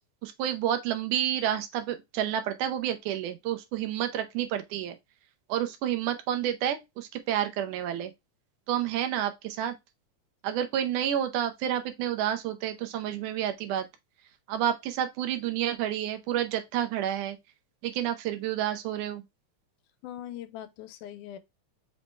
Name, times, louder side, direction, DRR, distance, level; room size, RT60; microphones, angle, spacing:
voice 1, 0.2-5.0 5.5-8.1 8.7-9.8 10.4-13.9 14.5-17.4 17.8-19.2, right 10 dB, 85° right, 2.2 m, -29 dB
voice 2, 20.0-21.4, left 11 dB, 85° left, 2.1 m, -41 dB
5.5 x 3.1 x 3.1 m
omnidirectional pair, 3.5 m